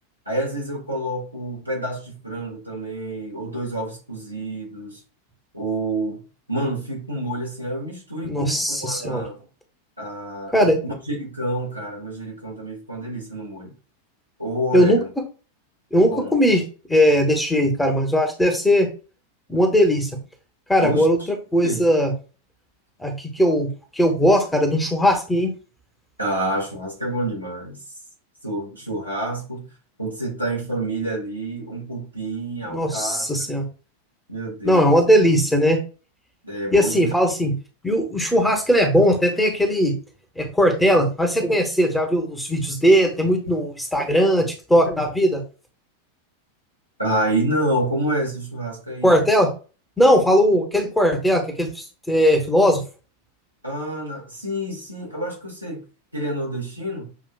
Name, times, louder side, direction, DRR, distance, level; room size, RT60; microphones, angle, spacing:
voice 1, 0.2-5.0 5.5-9.4 10.0-13.7 14.4-15.1 15.9-16.3 20.8-21.1 21.6-21.8 26.2-27.8 28.4-29.7 30.0-33.6 34.3-35.0 36.4-37.1 47.0-49.2 53.6-55.8 56.1-57.1, right 1 dB, 90° right, 1.7 m, -28 dB
voice 2, 8.2-9.3 10.5-10.8 14.7-15.0 15.9-16.6 16.9-18.9 19.5-20.1 20.7-21.2 21.5-22.1 23.0-25.5 32.7-33.6 34.6-35.8 36.7-37.5 37.8-39.9 40.4-45.4 49.0-49.5 50.0-52.8, equal, 5° left, 1.2 m, -19 dB
6.8 x 2.7 x 2.4 m
figure-of-eight pair, 90°, 0 cm